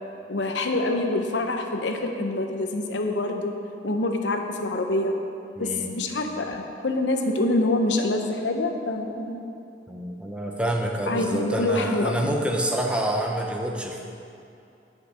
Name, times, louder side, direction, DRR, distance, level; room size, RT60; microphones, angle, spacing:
voice 1, 0.3-3.5 3.8-5.2 5.6-5.7 5.9-9.4 11.1-12.4, left 2 dB, 85° left, 4 dB, 0.8 m, -26 dB
voice 2, 5.6-5.9 9.9-14.0, right 1 dB, 5° right, 1 dB, 0.7 m, -27 dB
9.9 x 6.6 x 4.9 m, 2.7 s
head